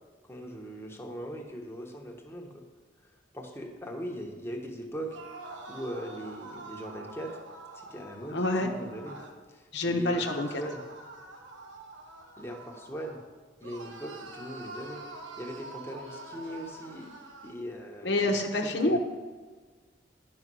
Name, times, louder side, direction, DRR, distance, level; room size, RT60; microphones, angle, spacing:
voice 1, 0.3-2.6 3.3-5.2 5.7-7.4 7.7-9.2 9.5-10.8 12.4-13.2 13.6-17.1 17.4-19.0, equal, 15° left, 1 dB, 1.2 m, -40 dB
sound 1, 5.0-9.4 10.1-13.3 13.6-17.6, right 2 dB, 90° right, 1.2 m, -46 dB
voice 2, 8.3-8.7 9.7-10.6 18.0-19.0, left 2 dB, 65° left, 2 dB, 1.0 m, -27 dB
10.5 x 5.5 x 6.2 m, 1.4 s
head